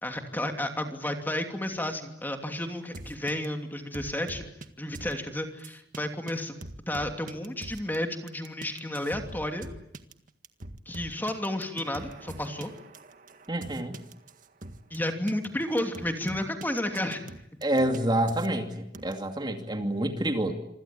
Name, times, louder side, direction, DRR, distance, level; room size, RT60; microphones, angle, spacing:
voice 1, 0.0-4.5 4.8-6.6 6.9-9.7 10.9-12.7 14.9-17.2, left 1 dB, 10° left, 5 dB, 2.8 m, -32 dB
sound 1, 2.9-3.4 3.9-4.7 4.9-5.2 5.6-6.0 6.3-6.4 6.6-7.9 8.3-15.0 15.3-15.4 15.8-18.0 18.3-18.5 18.9-19.1, right 2 dB, 50° right, 1.8 m, -43 dB
voice 2, 13.5-13.9 17.6-20.5, right 1 dB, 25° right, 5 dB, 2.6 m, -27 dB
26.5 x 25.5 x 8.6 m, 0.77 s
head